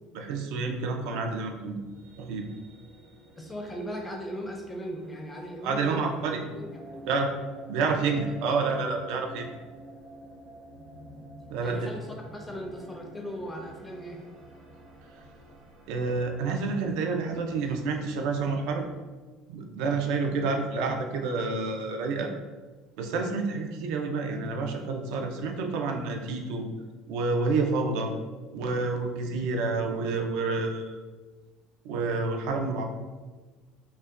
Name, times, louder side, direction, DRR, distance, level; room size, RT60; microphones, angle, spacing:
voice 1, 0.1-1.8 2.2-2.5 5.6-6.4 7.1-7.3 7.7-9.6 11.5-11.9 15.9-18.9 19.5-22.3 23.0-26.7 27.1-28.1 28.5-31.0 31.8-32.8, right 4 dB, 70° right, 3 dB, 0.4 m, -29 dB
sound 1, 1.5-18.8, right 1 dB, 35° right, 0.8 m, -50 dB
voice 2, 3.3-6.1 6.4-6.7 7.0-7.1 11.6-12.1 12.3-14.2, equal, 10° left, 1 dB, 0.4 m, -38 dB
5.3 x 2.2 x 2.4 m, 1.3 s
cardioid pair, 165°, 0 cm